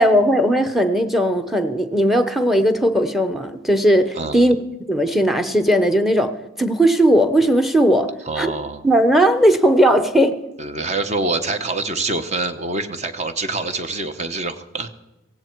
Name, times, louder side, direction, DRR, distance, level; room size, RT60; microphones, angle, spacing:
voice 1, 0.0-4.5 4.9-6.3 6.6-8.1 8.4-8.5 8.8-10.3, equal, ahead, 10 dB, 0.8 m, -17 dB
voice 2, 8.3-8.8 10.6-14.9, right 3 dB, 35° right, 9 dB, 1.0 m, -25 dB
16.5 x 16.5 x 4.6 m, 1.0 s
head